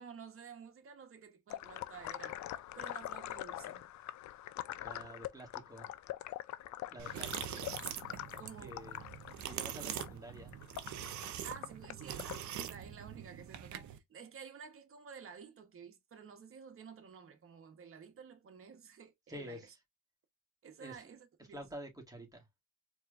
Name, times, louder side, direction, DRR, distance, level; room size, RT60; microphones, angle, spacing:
voice 1, 0.0-2.4 2.7-3.9 7.1-7.6 8.4-8.8 11.4-19.7 20.6-21.7, right 6 dB, 45° right, 1.1 m, -52 dB
sound 1, 1.5-12.4, left 14 dB, 70° left, 0.5 m, -44 dB
voice 2, 4.8-5.9 6.9-7.7 8.6-9.0 9.4-10.6 19.3-19.8 20.8-21.0 21.5-22.5, equal, 10° right, 1.7 m, -49 dB
sound 2, 7.0-14.0, right 10 dB, 70° right, 0.7 m, -43 dB
4.4 x 3.2 x 2.5 m
cardioid pair, 90°, 30 cm